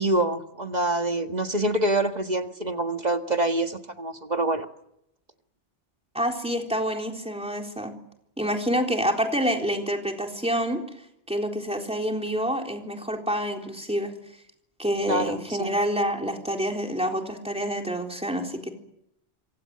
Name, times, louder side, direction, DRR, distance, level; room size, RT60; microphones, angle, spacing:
voice 1, 0.0-4.7 15.1-15.7, right 2 dB, 35° right, 6 dB, 1.8 m, -26 dB
voice 2, 6.1-7.9 8.4-10.8 11.3-14.1 14.8-18.7, equal, 5° right, 2 dB, 3.9 m, -27 dB
27.0 x 25.0 x 7.8 m, 0.78 s
omnidirectional pair, 1.2 m